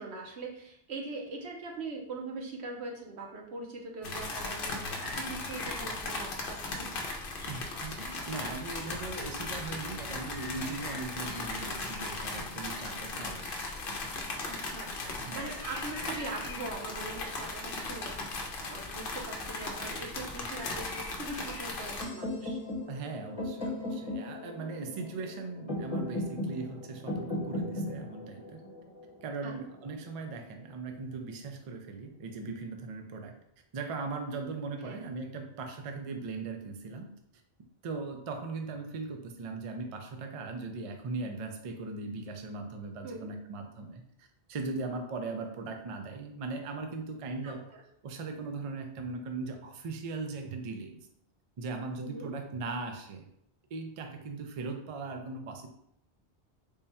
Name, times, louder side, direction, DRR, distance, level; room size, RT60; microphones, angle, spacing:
voice 1, 0.0-6.9 14.4-22.6 29.4-29.5 34.8-35.0 43.0-43.3 47.4-47.8 52.0-52.3, right 3 dB, 85° right, 1 dB, 1.1 m, -41 dB
sound 1, 4.0-22.0, left 3 dB, 65° left, 0.8 m, -37 dB
voice 2, 7.5-13.5 15.2-15.6 22.9-28.7 29.2-33.4 33.7-37.1 37.8-47.7 48.0-51.0 51.6-53.3 53.7-55.7, right 3 dB, 50° right, 4 dB, 0.4 m, -39 dB
sound 2, 22.0-29.9, left 1 dB, 35° left, 1.1 m, -37 dB
3.6 x 2.2 x 4.2 m, 0.74 s
omnidirectional pair, 1.1 m